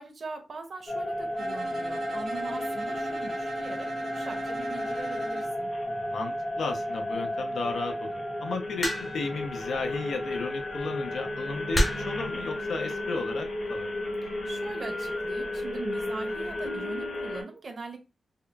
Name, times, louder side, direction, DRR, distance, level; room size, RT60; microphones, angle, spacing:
voice 1, 0.0-5.7 14.2-18.0, right 4 dB, 45° right, 5 dB, 0.7 m, -41 dB
sound 1, 0.9-17.4, left 1 dB, 55° left, 1.5 m, -33 dB
Bowed string instrument, 1.4-5.6, right 3 dB, 75° right, 1.0 m, -39 dB
voice 2, 5.9-13.9, left 3 dB, 75° left, 4 dB, 0.6 m, -34 dB
sound 2, 8.8-9.3 10.6-10.8 11.7-12.2 13.2-13.5, equal, 20° left, 0.7 m, -28 dB
3.6 x 2.3 x 2.2 m, 0.27 s
wide cardioid pair, 160°, 0 cm